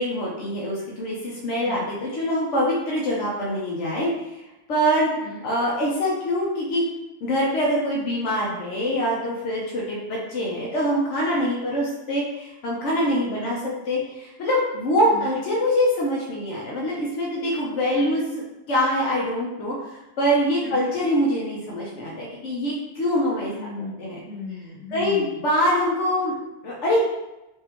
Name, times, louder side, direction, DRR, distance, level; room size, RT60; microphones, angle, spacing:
voice 1, 0.0-4.4 4.7-5.1 5.4-6.8 7.2-18.2 18.7-23.5 24.0-24.2 24.9-26.4 26.6-27.0, equal, 80° left, -4 dB, 1.1 m, -24 dB
voice 2, 1.5-1.9 5.1-5.4 13.3-13.7 15.1-15.3 17.9-18.2 20.6-20.9 23.5-24.0 24.2-25.5, left 1 dB, ahead, -7 dB, 1.0 m, -37 dB
5.4 x 2.7 x 3.0 m, 0.97 s
omnidirectional pair, 1.2 m